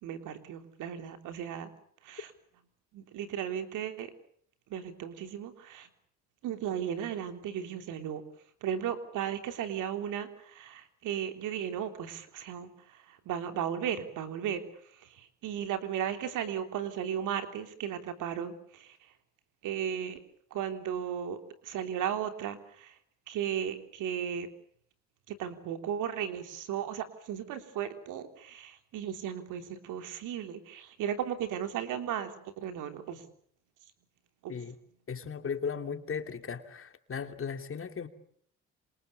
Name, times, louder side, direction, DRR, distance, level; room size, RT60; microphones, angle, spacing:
voice 1, 0.0-1.7 2.0-2.3 2.9-4.1 4.7-5.9 6.4-8.2 8.6-14.6 15.2-19.0 19.6-20.2 20.5-21.4 21.6-22.9 23.3-24.5 25.3-33.2 34.4-34.5, right 9 dB, 90° right, 3.4 m, -35 dB
voice 2, 35.1-38.1, left 6 dB, 45° left, 2.9 m, -36 dB
28.0 x 27.0 x 6.9 m
cardioid pair, 90°, 30 cm